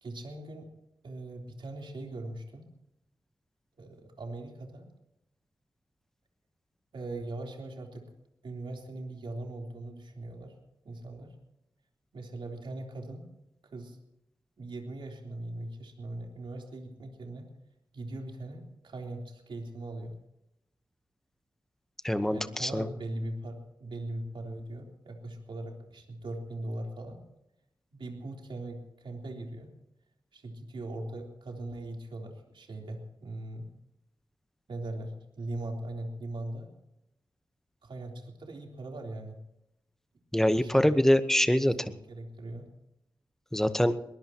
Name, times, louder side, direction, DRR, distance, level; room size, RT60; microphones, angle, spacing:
voice 1, 0.0-0.7 1.0-2.7 3.8-4.9 6.9-8.1 8.4-10.5 10.8-11.3 12.1-13.3 13.6-14.0 14.6-17.5 17.9-20.1 22.2-27.2 27.9-29.7 30.3-33.7 34.7-36.7 37.8-39.4 40.4-41.0 41.8-42.7, right 2 dB, 75° right, 1 dB, 3.5 m, -40 dB
voice 2, 22.0-22.9 40.3-41.9 43.5-43.9, left 1 dB, 5° left, 11 dB, 1.0 m, -24 dB
22.0 x 20.0 x 2.9 m, 0.84 s
wide cardioid pair, 105°, 8 cm